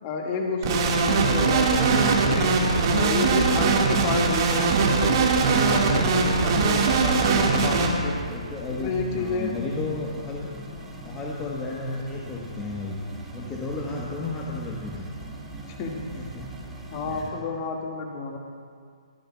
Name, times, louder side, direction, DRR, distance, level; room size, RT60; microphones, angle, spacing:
voice 1, 0.0-2.6 2.9-8.2 8.8-9.6 15.8-16.1 16.9-18.4, left 4 dB, 30° left, 0 dB, 2.0 m, -30 dB
sound 1, 0.6-7.9, right 4 dB, 40° right, 1.9 m, -21 dB
sound 2, 7.3-17.3, right 1 dB, 5° right, 2.3 m, -40 dB
voice 2, 8.3-10.5 11.0-13.0 13.3-15.1 16.2-17.3, left 2 dB, 15° left, -3 dB, 1.3 m, -33 dB
22.0 x 15.0 x 2.4 m, 2.1 s
figure-of-eight pair, 130°, 4 cm